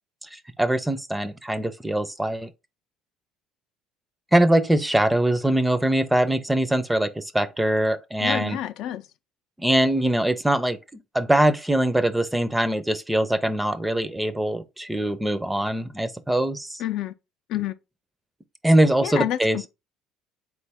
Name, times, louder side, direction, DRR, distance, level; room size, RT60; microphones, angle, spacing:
voice 1, 0.2-2.5 4.3-8.6 9.6-16.8 18.6-19.6, right 1 dB, 10° right, 0.5 m, -22 dB
voice 2, 8.2-9.0 16.8-17.1 17.5-17.7 19.0-19.4, left 12 dB, 70° left, 0.4 m, -27 dB
3.9 x 3.1 x 3.5 m
supercardioid pair, 85°, 0 cm